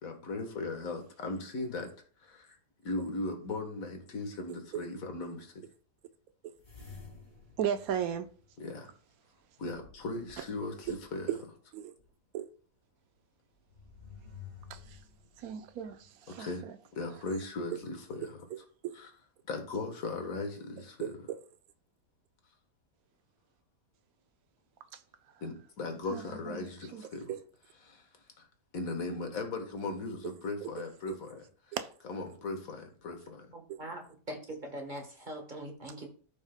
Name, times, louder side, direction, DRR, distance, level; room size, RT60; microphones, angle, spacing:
voice 1, 0.0-1.9 2.2-2.6 2.8-5.6 8.6-8.9 9.6-11.3 16.3-16.7 16.9-18.3 18.9-19.1 19.5-21.1 25.4-27.3 27.8-28.1 28.4-28.5 28.7-31.8 32.0-33.5, left 3 dB, 55° left, 1.7 m, -38 dB
sound 1, 6.6-9.0 9.7-11.3 12.0-12.1 13.5-16.1, left 6 dB, 25° left, 2.1 m, -52 dB
voice 2, 7.6-8.3 10.4-10.5 10.9-11.0 11.3-11.4 11.7-11.9 12.3-12.5 14.7-15.0 15.4-16.7 18.5-18.6 18.8-19.0 21.0-21.4 24.9-25.0 26.1-27.4 30.6-30.7 31.1-31.2 31.7-31.9 33.7-33.8, right 9 dB, 65° right, 1.1 m, -36 dB
voice 3, 33.5-34.0 34.3-36.1, right 1 dB, 30° right, 1.3 m, -42 dB
13.5 x 5.4 x 2.2 m
omnidirectional pair, 1.8 m